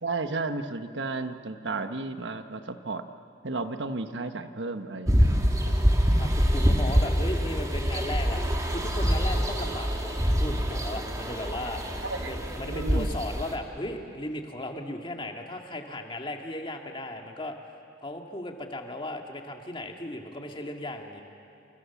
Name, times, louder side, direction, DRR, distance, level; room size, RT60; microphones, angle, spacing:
voice 1, 0.0-3.1 3.4-5.8 12.0-12.3 12.6-13.1, right 3 dB, 70° right, 8 dB, 1.3 m, -33 dB
sound 1, 5.1-13.6, equal, 20° right, 2.5 m, -25 dB
voice 2, 5.3-5.8 6.2-8.4 8.7-17.6 18.0-21.2, left 1 dB, 25° left, 3 dB, 2.2 m, -36 dB
29.0 x 28.0 x 7.3 m, 2.5 s
head